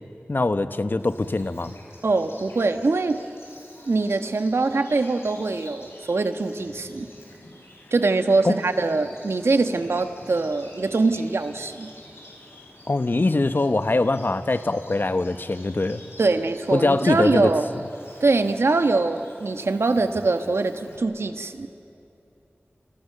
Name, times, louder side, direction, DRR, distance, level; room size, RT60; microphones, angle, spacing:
voice 1, 0.3-1.7 8.4-8.6 12.9-16.0 16.7-17.5, left 2 dB, 55° left, 10 dB, 1.1 m, -22 dB
Bird vocalization bird call bird song, 1.0-21.0, left 1 dB, 75° left, 6.3 m, -48 dB
voice 2, 2.0-3.2 3.9-7.1 7.9-11.9 16.2-17.7 18.2-21.7, right 3 dB, 90° right, 7 dB, 1.4 m, -23 dB
29.0 x 28.0 x 6.8 m, 2.9 s
wide cardioid pair, 55°, 4 cm